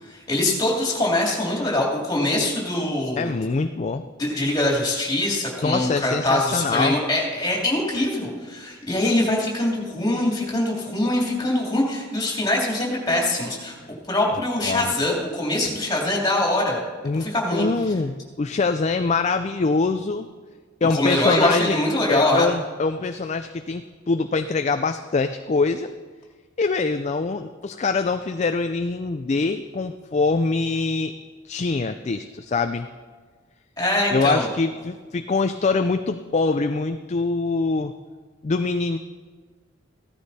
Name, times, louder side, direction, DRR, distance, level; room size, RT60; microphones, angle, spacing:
voice 1, 0.0-3.3 4.2-16.8 17.1-17.6 20.9-22.5 33.8-34.5, left 1 dB, 20° left, -2 dB, 2.8 m, -23 dB
voice 2, 3.2-4.0 5.6-7.0 14.3-14.9 17.0-20.3 20.8-21.8 22.1-25.9 26.6-31.1 31.4-32.9 34.1-37.9 38.4-39.0, left 4 dB, 35° left, 8 dB, 0.4 m, -24 dB
16.0 x 13.0 x 4.2 m, 1.5 s
head